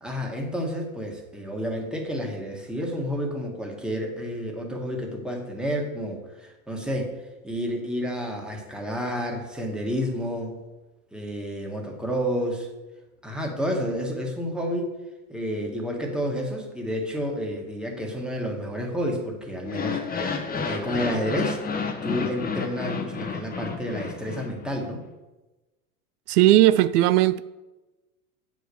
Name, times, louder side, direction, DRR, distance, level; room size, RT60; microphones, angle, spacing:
voice 1, 0.0-7.2 7.4-10.6 11.1-12.7 13.2-14.9 15.3-21.6 22.0-25.0, equal, ahead, 0 dB, 1.7 m, -30 dB
sound 1, 19.6-24.8, left 5 dB, 20° left, 1.1 m, -31 dB
voice 2, 26.3-27.4, right 15 dB, 80° right, 14 dB, 0.5 m, -17 dB
7.8 x 5.1 x 6.9 m, 1.1 s
supercardioid pair, 120°, 45 cm